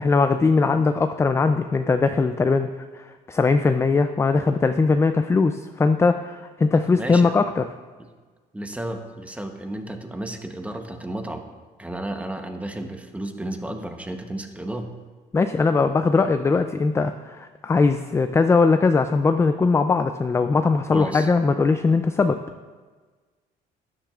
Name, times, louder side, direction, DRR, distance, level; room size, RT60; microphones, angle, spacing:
voice 1, 0.0-2.7 2.9-7.6 15.3-22.4, left 4 dB, 15° left, 8 dB, 0.3 m, -20 dB
voice 2, 6.9-7.4 8.5-11.5 11.8-14.9 20.9-21.3, right 1 dB, 10° right, 5 dB, 0.9 m, -32 dB
12.5 x 10.0 x 2.4 m, 1.4 s
cardioid pair, 110°, 17 cm